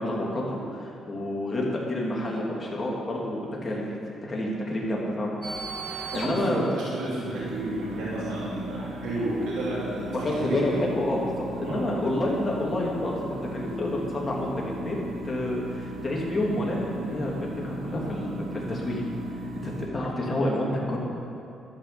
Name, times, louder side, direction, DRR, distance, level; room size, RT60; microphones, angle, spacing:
voice 1, 0.0-3.8 4.3-5.4 5.8-6.6 10.1-11.3 11.6-19.0 19.6-21.0, left 1 dB, 30° left, -3 dB, 2.9 m, -29 dB
sound 1, 5.4-19.9, right 1 dB, 45° right, 1.7 m, -37 dB
voice 2, 5.8-10.0 10.4-10.7 11.6-11.9, right 1 dB, 85° right, -8 dB, 2.8 m, -31 dB
12.5 x 6.6 x 7.0 m, 2.8 s
cardioid pair, 90°, 0 cm